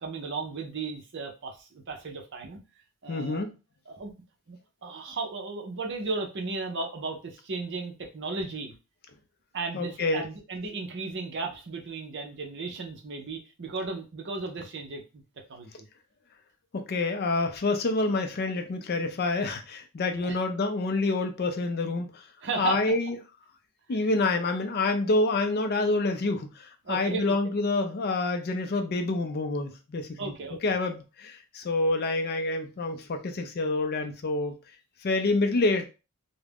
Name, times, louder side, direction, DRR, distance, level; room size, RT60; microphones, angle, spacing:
voice 1, 0.0-2.6 3.0-3.5 3.9-4.1 4.5-8.8 9.5-15.2 15.5-15.9 20.2-20.4 22.4-23.0 23.9-24.0 26.8-27.4 30.2-30.6, right 3 dB, 55° right, 3 dB, 0.6 m, -35 dB
voice 2, 3.1-3.5 9.7-10.2 16.7-22.1 22.6-23.1 23.9-26.5 26.9-30.1 30.6-34.5 35.0-35.8, left 2 dB, 45° left, 6 dB, 0.4 m, -27 dB
2.4 x 2.1 x 3.4 m, 0.30 s
head